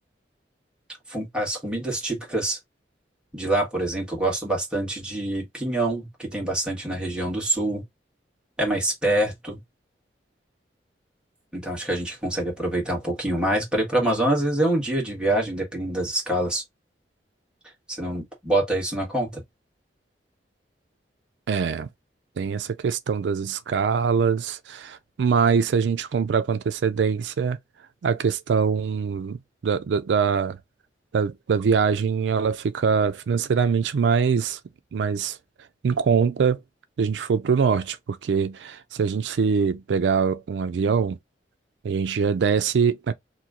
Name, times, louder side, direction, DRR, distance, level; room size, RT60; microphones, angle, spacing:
voice 1, 1.1-2.6 3.3-7.8 8.6-9.6 11.5-16.6 17.9-19.4, right 1 dB, 5° right, 1.4 m, -25 dB
voice 2, 21.5-21.9 22.4-27.6 28.0-29.4 29.6-30.6 31.1-34.6 34.9-35.4 35.8-36.6 37.0-41.2 41.8-43.1, right 6 dB, 80° right, 0.4 m, -23 dB
3.0 x 2.2 x 3.6 m
head